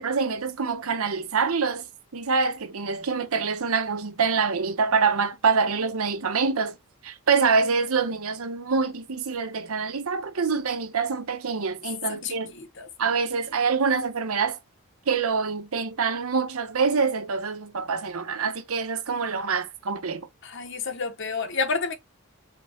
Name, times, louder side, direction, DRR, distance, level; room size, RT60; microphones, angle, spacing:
voice 1, 0.0-1.8 2.1-6.8 7.0-12.5 13.0-14.6 15.1-20.2, right 5 dB, 75° right, 0.8 m, -25 dB
voice 2, 12.1-12.9 20.4-21.9, left 4 dB, 55° left, 1.1 m, -30 dB
5.1 x 3.0 x 2.8 m
head